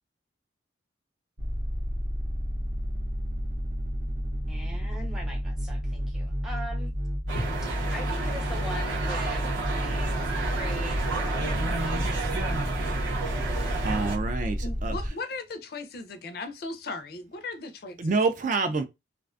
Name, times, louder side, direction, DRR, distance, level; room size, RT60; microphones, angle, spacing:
sound 1, 1.4-15.1, equal, 60° right, 0.7 m, -31 dB
voice 1, 4.5-6.9 7.9-12.3, equal, ahead, 0.6 m, -41 dB
sound 2, 7.3-14.2, right 2 dB, 85° right, 0.9 m, -31 dB
voice 2, 13.8-15.0 18.0-18.8, right 3 dB, 40° right, 0.3 m, -27 dB
voice 3, 14.6-18.2, left 3 dB, 55° left, 0.4 m, -37 dB
2.4 x 2.2 x 2.4 m
head